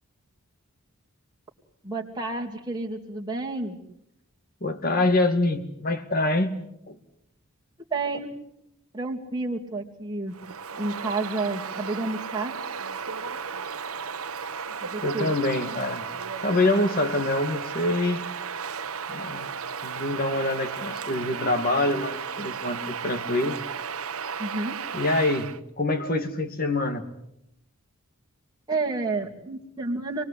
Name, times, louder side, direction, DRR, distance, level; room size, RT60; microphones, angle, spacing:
voice 1, 1.8-3.8 7.9-8.3 8.9-10.3 10.8-12.5 14.8-15.4 24.4-24.7 28.7-30.2, right 3 dB, 20° right, -1 dB, 2.6 m, -30 dB
voice 2, 4.6-6.6 6.9-7.0 15.0-16.0 16.4-18.2 19.1-19.5 19.8-23.6 24.9-25.5 25.8-27.1, left 2 dB, 40° left, 6 dB, 2.3 m, -25 dB
Bird vocalization bird call bird song, 10.3-25.6, right 6 dB, 70° right, 1.0 m, -34 dB
27.5 x 20.5 x 8.4 m, 0.79 s
head